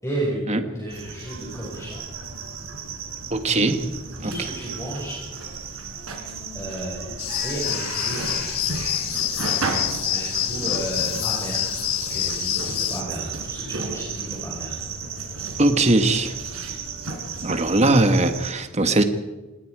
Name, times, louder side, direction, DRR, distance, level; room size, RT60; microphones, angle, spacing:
voice 1, 0.0-2.0 3.6-3.7 4.2-5.2 6.5-7.0 7.4-8.2 10.0-11.8 12.1-14.8, right 1 dB, 15° left, -4 dB, 5.6 m, -32 dB
sound 1, 0.9-18.5, right 4 dB, 70° right, 4.6 m, -33 dB
voice 2, 3.3-3.8 4.2-4.3 15.6-16.4 17.4-19.0, right 2 dB, 30° right, 8 dB, 1.5 m, -20 dB
sound 2, 7.2-13.0, left 13 dB, 75° left, 1.3 m, -27 dB
27.0 x 20.0 x 4.9 m, 1.2 s
head